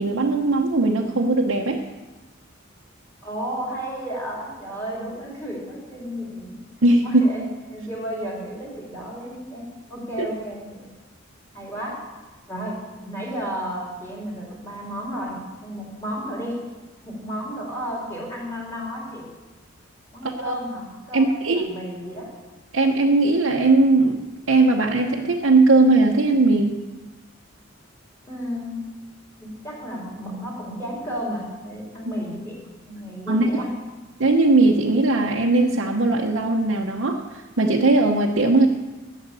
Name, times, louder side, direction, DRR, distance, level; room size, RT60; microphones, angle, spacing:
voice 1, 0.0-1.8 6.8-7.2 10.2-10.3 20.2-20.6 21.1-21.7 22.7-24.2 24.5-26.8 33.3-33.5 34.2-38.7, right 2 dB, 70° right, -1 dB, 0.9 m, -19 dB
voice 2, 3.2-6.6 7.0-10.8 11.5-12.0 12.5-16.6 17.0-19.3 20.1-22.3 28.3-28.9 29.4-33.7, equal, 10° left, -5 dB, 3.8 m, -33 dB
12.5 x 7.3 x 8.2 m, 1.2 s
head